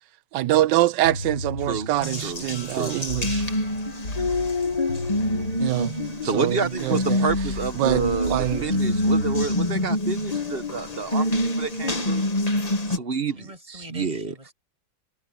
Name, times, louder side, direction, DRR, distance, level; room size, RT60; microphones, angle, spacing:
voice 1, 0.3-3.4 5.6-5.9 6.3-7.2 7.8-8.7, right 15 dB, 80° right, 1.3 m, -24 dB
sound 1, 1.0-10.8, left 1 dB, 75° left, 7.1 m, -35 dB
Water tap faucet, 2.0-13.0, left 1 dB, 25° left, 1.4 m, -26 dB
voice 2, 2.2-3.1 6.2-12.3 13.0-14.3, right 5 dB, 40° right, 1.0 m, -29 dB
sound 2, 2.5-9.9, equal, 5° left, 4.7 m, -50 dB
voice 3, 3.4-3.8 13.4-14.5, right 1 dB, 20° right, 7.3 m, -44 dB
omnidirectional pair, 1.9 m